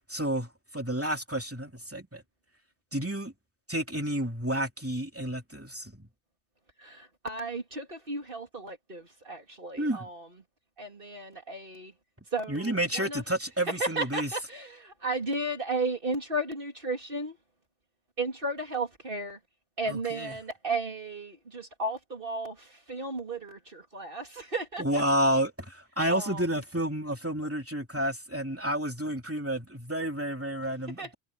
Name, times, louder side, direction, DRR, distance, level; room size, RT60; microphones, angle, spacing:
voice 1, 0.1-2.2 2.9-3.3 3.7-6.1 9.8-10.1 12.5-14.4 19.9-20.4 24.8-31.1, right 1 dB, 10° right, 2.8 m, -30 dB
voice 2, 6.8-10.2 10.8-11.9 12.3-13.2 13.8-17.4 18.2-19.4 19.8-25.0 26.1-26.4 31.0-31.1, right 2 dB, 45° right, 3.1 m, -34 dB
omnidirectional pair, 1.2 m